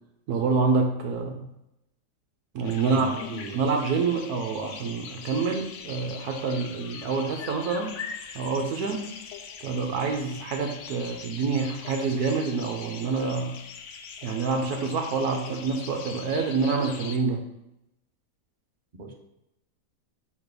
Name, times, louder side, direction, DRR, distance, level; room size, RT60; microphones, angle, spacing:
voice 1, 0.3-1.5 2.5-3.1 3.5-8.0 8.3-9.1 9.6-13.6 14.2-17.4, right 4 dB, 70° right, 3 dB, 1.2 m, -27 dB
sound 1, 2.6-17.2, left 6 dB, 70° left, 0.7 m, -42 dB
voice 2, 2.9-3.6 19.0-19.1, right 2 dB, 35° right, 0 dB, 0.9 m, -37 dB
6.3 x 3.3 x 5.2 m, 0.87 s
omnidirectional pair, 1.8 m